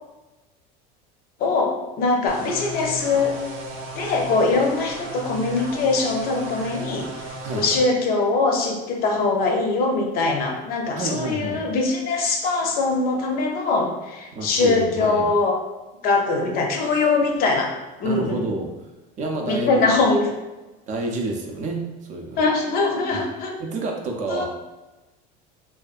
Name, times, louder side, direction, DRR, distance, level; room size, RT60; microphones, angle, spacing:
voice 1, 1.4-3.3 3.9-7.1 7.6-15.6 16.0-17.7 18.0-18.4 19.5-20.2 22.4-23.6 24.3-24.5, left 3 dB, 50° left, 2 dB, 0.5 m, -22 dB
sound 1, 2.3-7.8, right 1 dB, 80° right, 0.6 m, -35 dB
voice 2, 11.0-11.6 14.3-15.3 18.0-18.7 19.2-20.1 20.9-22.4 23.6-24.5, right 2 dB, 40° right, 1 dB, 0.4 m, -29 dB
2.6 x 2.3 x 2.3 m, 1.1 s
supercardioid pair, 125°, 20 cm